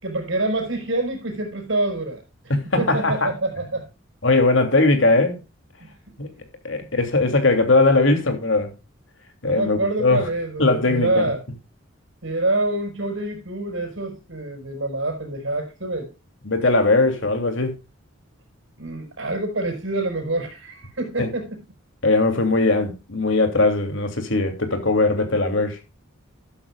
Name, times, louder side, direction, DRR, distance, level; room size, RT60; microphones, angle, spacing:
voice 1, 0.0-2.2 2.6-3.9 5.8-6.2 9.4-11.4 12.2-16.1 18.8-21.6, right 2 dB, 70° right, 5.4 m, -26 dB
voice 2, 2.5-3.3 4.2-5.4 6.2-6.3 6.6-8.7 9.4-10.2 10.6-11.2 16.4-17.8 21.2-21.3 22.0-25.8, left 2 dB, 70° left, 2.9 m, -19 dB
13.5 x 12.5 x 2.4 m
head